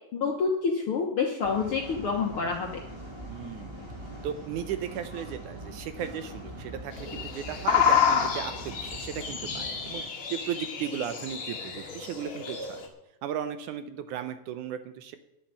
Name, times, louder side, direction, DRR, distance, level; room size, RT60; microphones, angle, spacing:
voice 1, 0.1-2.8, left 5 dB, 60° left, 1 dB, 1.4 m, -28 dB
sound 1, 1.4-10.0, right 1 dB, 10° right, 1.8 m, -42 dB
voice 2, 3.3-3.7 4.2-10.0 10.3-12.9 13.2-15.2, right 9 dB, 75° right, 10 dB, 2.0 m, -36 dB
sound 2, 6.9-12.9, left 7 dB, 45° left, 2.1 m, -29 dB
10.0 x 7.3 x 9.4 m, 0.88 s
omnidirectional pair, 3.9 m